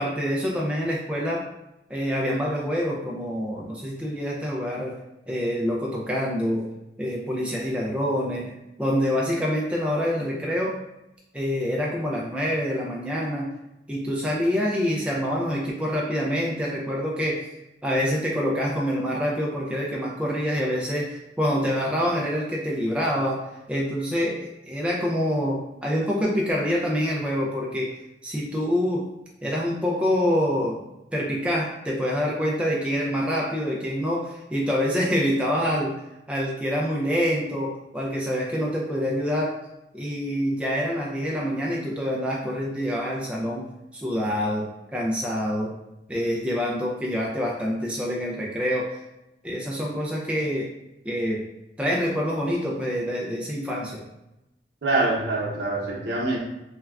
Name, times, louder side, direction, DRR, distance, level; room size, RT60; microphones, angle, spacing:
voice 1, 0.0-1.4 1.9-5.0 5.3-6.6 7.0-8.5 8.8-10.8 11.3-13.5 13.9-17.5 17.8-27.9 28.2-29.0 29.4-30.8 31.1-35.9 36.3-39.6 39.9-43.7 43.9-45.7 46.1-48.9 49.4-50.7 51.0-51.4 51.8-54.0, equal, 5° right, -4 dB, 0.3 m, -26 dB
voice 2, 54.8-56.4, right 2 dB, 75° right, -1 dB, 0.6 m, -24 dB
3.3 x 2.2 x 2.3 m, 0.92 s
head